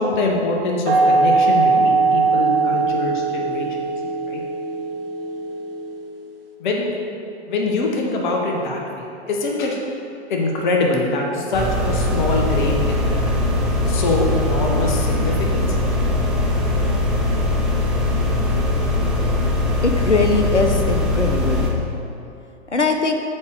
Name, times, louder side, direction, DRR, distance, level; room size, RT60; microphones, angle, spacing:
voice 1, 0.0-3.8 4.3-4.4 6.6-6.9 7.5-9.8 10.3-13.5 13.9-15.7, left 2 dB, 45° left, 0 dB, 1.0 m, -23 dB
sound 1, 0.9-6.3, right 3 dB, 55° right, 1.0 m, -20 dB
sound 2, 11.5-21.7, left 2 dB, ahead, 0.5 m, -20 dB
voice 2, 19.8-21.7 22.7-23.1, left 3 dB, 90° left, 5 dB, 0.8 m, -20 dB
7.1 x 4.9 x 4.8 m, 2.6 s
figure-of-eight pair, 105°, 34 cm